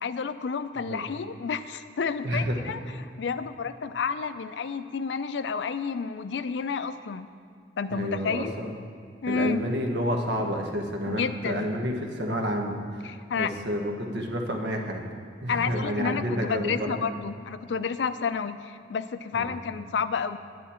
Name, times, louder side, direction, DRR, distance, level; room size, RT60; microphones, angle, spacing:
voice 1, 0.0-2.8 3.2-7.3 7.8-8.5 9.2-9.7 11.1-11.6 13.0-13.5 15.5-20.4, left 5 dB, 80° left, 12 dB, 0.4 m, -30 dB
voice 2, 2.2-2.6 7.9-8.7 9.3-12.8 13.4-15.0 15.4-16.9 19.3-19.5, equal, 70° right, 2 dB, 1.2 m, -29 dB
9.9 x 9.5 x 4.4 m, 2.3 s
head